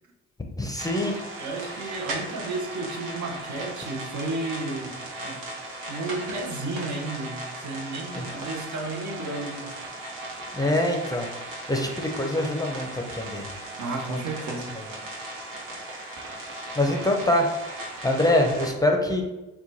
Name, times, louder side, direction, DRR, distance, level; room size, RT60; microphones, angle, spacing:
voice 1, 0.6-1.2 1.6-1.9 8.1-8.3 10.5-13.5 14.1-14.2 14.7-14.9 16.4-19.2, left 1 dB, 10° left, 2 dB, 0.5 m, -25 dB
sound 1, 0.8-18.7, right 1 dB, 80° right, 0.9 m, -37 dB
voice 2, 1.4-5.4 5.9-9.7 13.8-14.8, right 2 dB, 60° right, 1 dB, 0.7 m, -33 dB
3.0 x 2.2 x 3.9 m, 1.1 s
hypercardioid pair, 50°, 34 cm